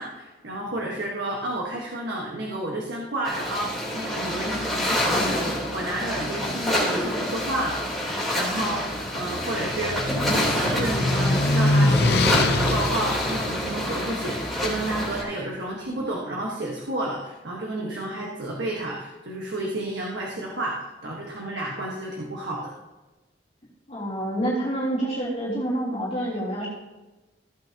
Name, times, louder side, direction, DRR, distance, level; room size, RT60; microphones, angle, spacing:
voice 1, 0.0-7.8 8.3-22.7, right 1 dB, 85° right, -3 dB, 1.5 m, -31 dB
sound 1, 3.2-15.2, equal, ahead, 3.6 m, -27 dB
sound 2, 8.8-15.0, left 2 dB, 65° left, 0.7 m, -25 dB
voice 2, 23.9-26.7, right 1 dB, 35° left, -8 dB, 3.2 m, -27 dB
15.5 x 8.6 x 2.9 m, 1.1 s
head